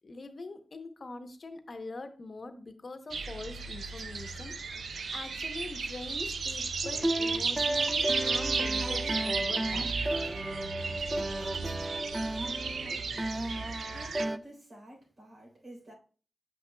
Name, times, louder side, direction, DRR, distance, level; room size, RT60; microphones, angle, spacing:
voice 1, 0.0-4.8 5.1-9.9 11.2-11.3, left 3 dB, 50° left, 0.8 m, -43 dB
sound 1, 3.1-14.2, right 4 dB, 80° right, 0.5 m, -34 dB
sound 2, 6.8-14.4, right 1 dB, 15° right, 0.3 m, -34 dB
voice 2, 13.9-15.9, right 1 dB, 60° right, 3.4 m, -50 dB
7.6 x 5.7 x 2.2 m
cardioid pair, 65°, 0 cm